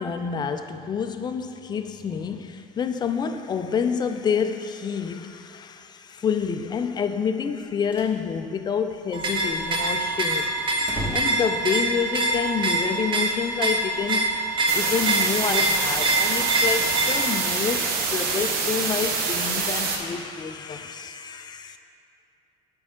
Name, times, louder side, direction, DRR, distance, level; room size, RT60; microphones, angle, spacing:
voice 1, 0.0-10.5 11.1-14.3 14.7-21.8, left 6 dB, 25° left, 8 dB, 0.4 m, -28 dB
sound 1, 7.5-8.2 8.5-8.6 8.8-8.9 9.4-12.4, equal, 10° right, 1.1 m, -37 dB
sound 2, 9.1-17.4, right 2 dB, 30° right, 0.8 m, -25 dB
sound 3, 14.7-20.0, right 4 dB, 65° right, 0.8 m, -26 dB
7.3 x 4.7 x 3.7 m, 2.7 s
cardioid pair, 115°, 16 cm